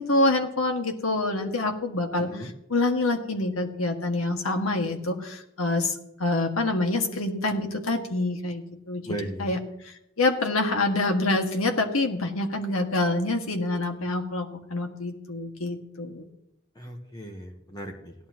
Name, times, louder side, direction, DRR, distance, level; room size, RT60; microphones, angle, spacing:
voice 1, 0.0-9.0 9.4-9.6 9.8-16.3, left 2 dB, 85° left, 4 dB, 1.8 m, -26 dB
voice 2, 2.2-2.5 9.1-9.5 16.8-18.1, right 1 dB, 20° left, 3 dB, 1.1 m, -37 dB
17.0 x 11.0 x 2.9 m, 0.79 s
head